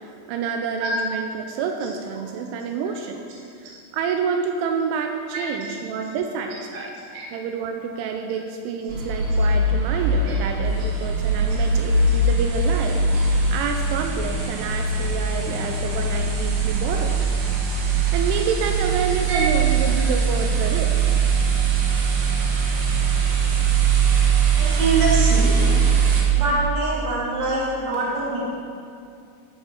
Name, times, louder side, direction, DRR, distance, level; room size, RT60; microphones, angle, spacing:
voice 1, 0.0-3.2 3.6-6.9 7.3-17.2 17.9-20.9 27.9-28.0, right 6 dB, 85° right, 4 dB, 2.9 m, -28 dB
sound 1, 8.9-26.2, right 4 dB, 65° right, 2.8 m, -21 dB
voice 2, 24.6-25.7 26.4-28.4, right 2 dB, 45° right, -6 dB, 1.5 m, -24 dB
13.5 x 4.8 x 5.8 m, 2.4 s
omnidirectional pair, 5.8 m